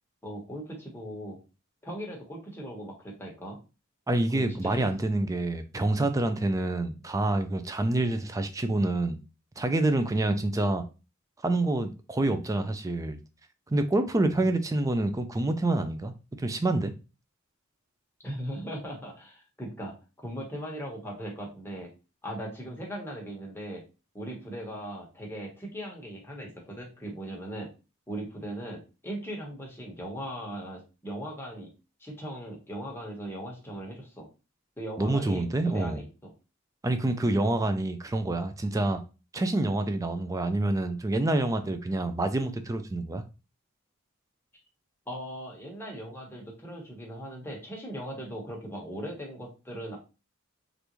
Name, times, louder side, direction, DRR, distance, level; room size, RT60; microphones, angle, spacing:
voice 1, 0.2-1.4 1.8-3.6 4.3-4.9 14.4-14.5 18.2-19.9 20.2-21.9 22.2-23.8 24.1-27.7 28.1-31.7 32.0-34.3 34.8-36.3 45.1-50.0, right 1 dB, 10° left, 1.1 m, -39 dB
voice 2, 4.1-9.2 9.6-10.8 11.4-13.2 13.7-16.1 16.4-16.9 35.0-36.0 36.8-39.0 39.3-43.2, right 2 dB, 15° right, 0.4 m, -27 dB
3.4 x 2.6 x 3.0 m
head